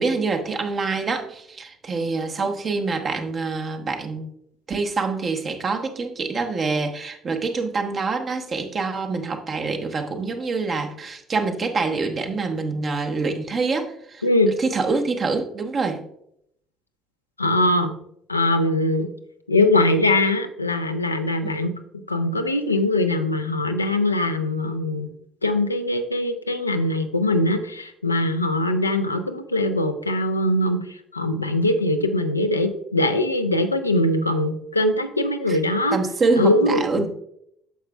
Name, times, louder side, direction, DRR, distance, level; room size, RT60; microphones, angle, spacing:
voice 1, 0.0-4.3 4.7-14.2 14.6-16.0 21.4-21.5 35.5-35.6 35.9-37.1, right 4 dB, 40° right, 4 dB, 1.0 m, -25 dB
voice 2, 17.4-17.9 18.3-19.1 19.5-21.7 22.1-25.1 25.4-30.8 31.1-36.0 36.4-37.1, left 1 dB, 90° left, 7 dB, 0.4 m, -22 dB
9.1 x 6.6 x 2.2 m, 0.73 s
figure-of-eight pair, 55°, 0 cm